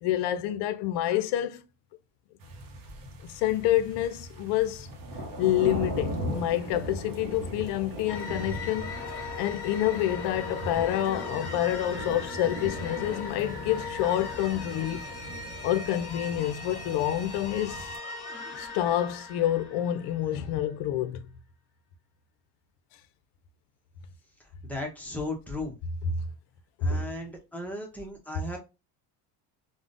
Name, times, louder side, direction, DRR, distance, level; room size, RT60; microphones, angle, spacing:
voice 1, 0.0-1.6 3.3-4.9 5.4-8.9 9.3-15.0 15.6-17.9 18.6-21.2 26.8-27.1, left 12 dB, 65° left, 0.5 m, -28 dB
sound 1, 2.4-18.0, right 1 dB, 50° right, 0.7 m, -39 dB
sound 2, 8.1-20.6, left 4 dB, 30° left, 1.0 m, -39 dB
voice 2, 24.6-25.7 26.8-28.6, left 2 dB, 5° left, 0.5 m, -36 dB
3.6 x 2.1 x 2.4 m
cardioid pair, 135°, 45 cm